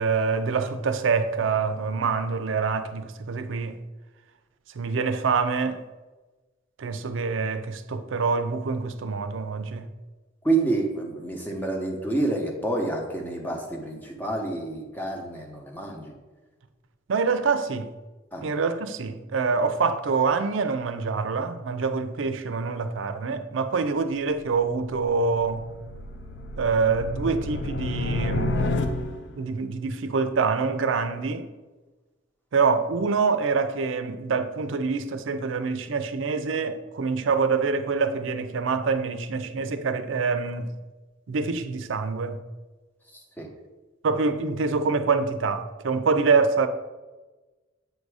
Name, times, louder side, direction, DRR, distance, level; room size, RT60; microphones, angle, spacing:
voice 1, 0.0-3.8 4.8-5.8 6.8-9.9 17.1-17.9 18.4-25.6 26.6-28.7 29.4-31.5 32.5-40.8 41.3-42.4 44.0-46.7, right 4 dB, 80° right, 0.5 m, -25 dB
voice 2, 10.4-16.1 18.3-18.5 43.4-43.5, right 2 dB, 10° left, 0.8 m, -28 dB
sound 1, 24.2-29.4, left 2 dB, 60° left, 0.5 m, -31 dB
7.9 x 2.6 x 4.7 m
head